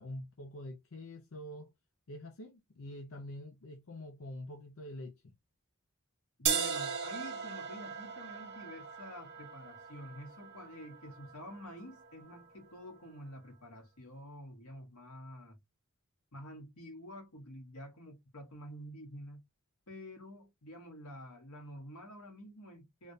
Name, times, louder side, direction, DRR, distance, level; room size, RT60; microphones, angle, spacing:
voice 1, 0.0-1.7 2.1-5.3, left 1 dB, 65° left, 0.6 m, -46 dB
voice 2, 6.4-15.6 16.3-19.4 19.9-23.1, equal, 90° left, 1.7 m, -49 dB
sound 1, 6.5-12.4, right 7 dB, 50° right, 0.7 m, -38 dB
3.6 x 2.5 x 2.7 m
head